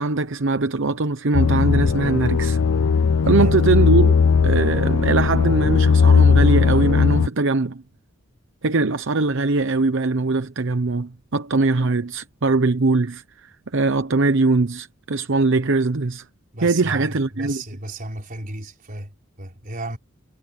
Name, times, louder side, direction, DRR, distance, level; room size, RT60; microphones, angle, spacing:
voice 1, 0.0-2.6 3.3-4.2 4.4-7.8 8.6-16.2 16.6-17.6, right 3 dB, 65° right, 0.9 m, -21 dB
sound 1, 1.3-7.3, left 5 dB, 70° left, 0.5 m, -17 dB
voice 2, 16.5-20.0, right 1 dB, 40° right, 4.5 m, -33 dB
head